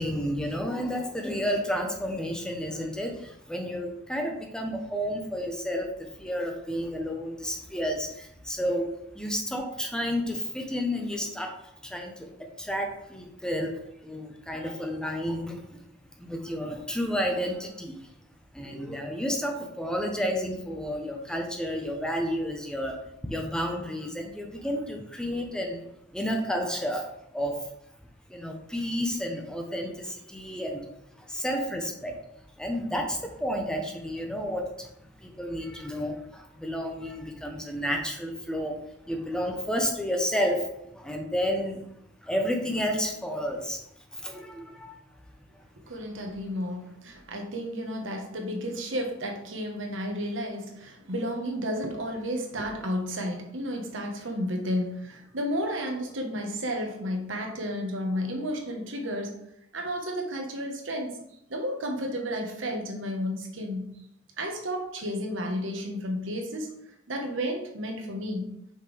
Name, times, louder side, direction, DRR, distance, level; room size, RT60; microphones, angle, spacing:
voice 1, 0.0-15.9 16.2-18.1 18.5-25.8 26.1-27.7 28.3-30.9 31.1-41.8 42.2-43.8 44.1-45.1, equal, 5° left, 2 dB, 0.8 m, -31 dB
voice 2, 45.9-59.4 59.7-61.2 61.5-64.0 64.4-66.7 67.1-68.6, equal, 70° right, 2 dB, 1.3 m, -32 dB
5.8 x 5.4 x 3.4 m, 0.76 s
head